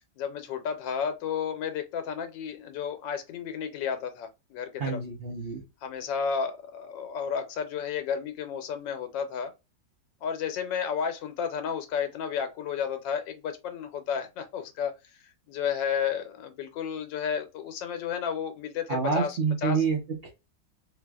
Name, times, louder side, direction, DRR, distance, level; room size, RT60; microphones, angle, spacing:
voice 1, 0.2-5.0 5.8-9.5 10.2-14.9 15.5-19.8, left 7 dB, 85° left, 1.4 m, -32 dB
voice 2, 4.8-5.6 18.9-20.3, right 5 dB, 55° right, 0.6 m, -28 dB
3.3 x 2.8 x 2.3 m
omnidirectional pair, 1.9 m